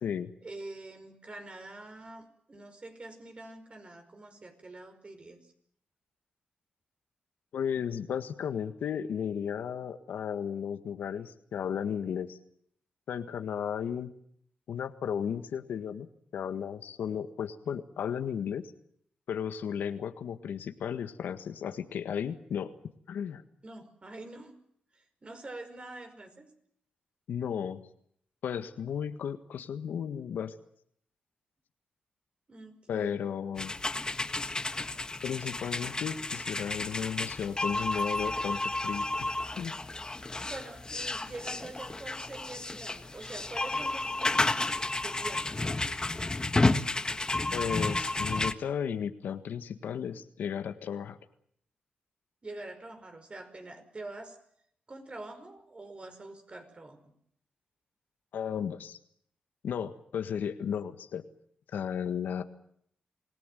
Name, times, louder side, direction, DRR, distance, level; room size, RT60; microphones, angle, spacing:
voice 1, 0.4-5.5 23.6-24.5 24.9-26.5 32.5-33.2 40.4-45.7 52.4-54.4 54.9-57.0, right 2 dB, 40° right, 7 dB, 5.2 m, -45 dB
voice 2, 7.5-12.4 13.1-14.1 14.7-16.1 16.3-18.6 19.3-22.7 23.1-23.4 27.3-27.8 28.4-30.5 32.9-33.7 35.2-39.3 39.5-39.7 47.5-51.2 58.3-59.0 59.6-61.2 61.7-62.4, left 8 dB, 85° left, 9 dB, 1.6 m, -34 dB
sound 1, 33.6-48.5, left 2 dB, 25° left, 1.5 m, -32 dB
26.5 x 17.5 x 9.3 m, 0.69 s
cardioid pair, 60°, 3 cm